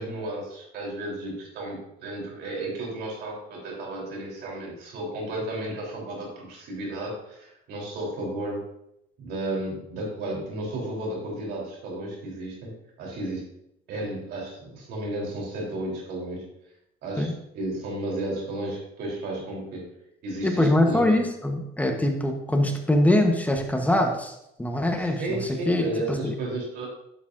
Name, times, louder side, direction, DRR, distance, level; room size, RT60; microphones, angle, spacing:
voice 1, 0.0-8.6 9.2-12.7 13.0-13.5 13.9-16.5 17.0-19.9 20.2-21.2 25.0-26.9, right 1 dB, 80° right, -2 dB, 3.5 m, -33 dB
voice 2, 20.4-25.4 25.7-26.3, left 1 dB, 10° left, 4 dB, 1.0 m, -23 dB
11.0 x 7.0 x 2.6 m, 0.81 s
cardioid pair, 110°, 17 cm